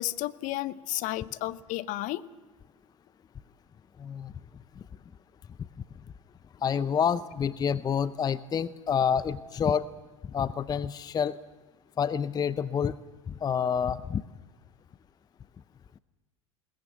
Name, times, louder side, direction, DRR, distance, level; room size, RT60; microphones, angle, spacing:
voice 1, 0.0-2.2, left 16 dB, 50° left, 16 dB, 0.9 m, -32 dB
voice 2, 4.0-4.3 6.6-9.9 10.2-11.4 12.0-13.0 13.3-14.2, left 7 dB, 25° left, 16 dB, 0.6 m, -28 dB
21.5 x 19.5 x 8.0 m, 1.2 s
hypercardioid pair, 85°, 17 cm